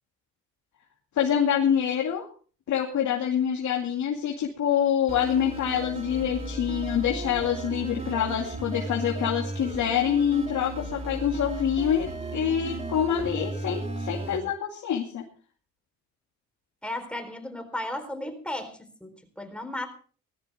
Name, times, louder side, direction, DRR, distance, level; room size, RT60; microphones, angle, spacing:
voice 1, 1.2-2.3 2.7-15.2, left 9 dB, 70° left, 0 dB, 2.4 m, -26 dB
sound 1, 5.1-14.4, right 2 dB, 20° right, 3.3 m, -35 dB
voice 2, 16.8-19.9, left 1 dB, 5° left, 6 dB, 4.0 m, -35 dB
19.0 x 13.5 x 3.6 m, 0.41 s
cardioid pair, 90°, 30 cm